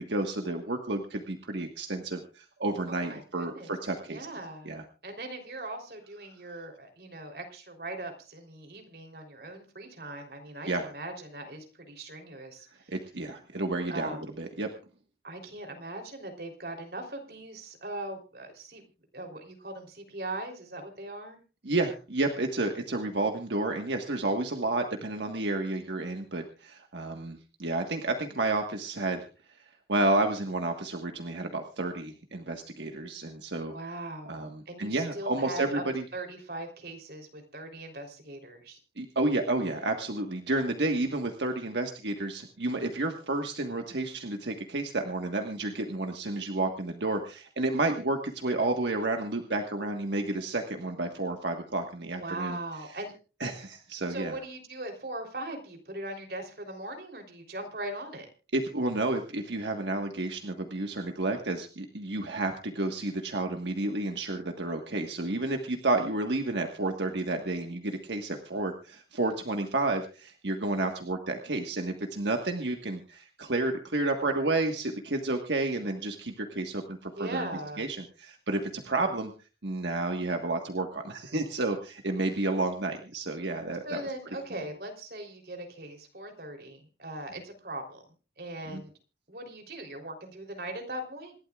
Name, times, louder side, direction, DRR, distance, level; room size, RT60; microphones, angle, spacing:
voice 1, 0.0-4.3 4.6-4.8 10.6-10.9 12.9-14.7 21.6-29.3 29.9-33.7 34.3-36.0 39.0-52.6 53.4-54.4 58.5-77.5 77.8-79.3 79.6-84.0 88.7-88.8, right 2 dB, 85° right, 4 dB, 1.5 m, -31 dB
voice 2, 2.9-3.7 4.1-12.9 13.9-14.3 15.2-18.8 19.1-21.4 33.7-35.8 36.1-38.8 52.1-53.1 54.1-58.3 77.2-77.9 83.8-88.0 88.4-88.9 89.3-91.3, right 1 dB, 60° right, 3 dB, 3.5 m, -40 dB
27.0 x 12.0 x 2.4 m, 0.34 s
head